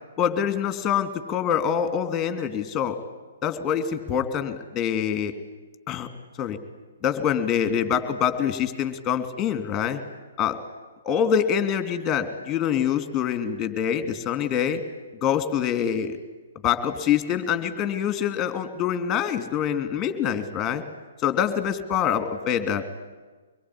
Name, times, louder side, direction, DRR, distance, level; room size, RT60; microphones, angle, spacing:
voice 1, 0.2-3.0 3.4-5.3 5.9-6.1 6.4-6.6 7.0-10.0 10.4-10.6 11.0-14.8 15.2-16.2 16.6-20.8 21.2-22.8, left 8 dB, 20° left, 9 dB, 2.9 m, -25 dB
24.5 x 22.0 x 10.0 m, 1.3 s
figure-of-eight pair, 130°, 0 cm